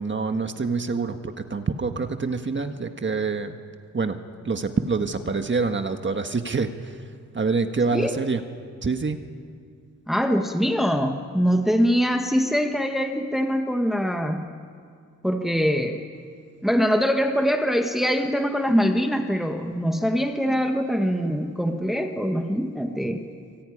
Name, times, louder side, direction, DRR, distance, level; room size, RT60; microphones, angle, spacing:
voice 1, 0.0-3.6 3.9-4.2 4.4-7.0 7.3-8.4 8.8-9.2, right 4 dB, 40° right, 6 dB, 1.5 m, -26 dB
voice 2, 10.1-14.5 15.2-16.0 16.6-23.2, equal, ahead, 4 dB, 1.5 m, -23 dB
24.5 x 24.0 x 9.9 m, 2.2 s
wide cardioid pair, 115°, 30 cm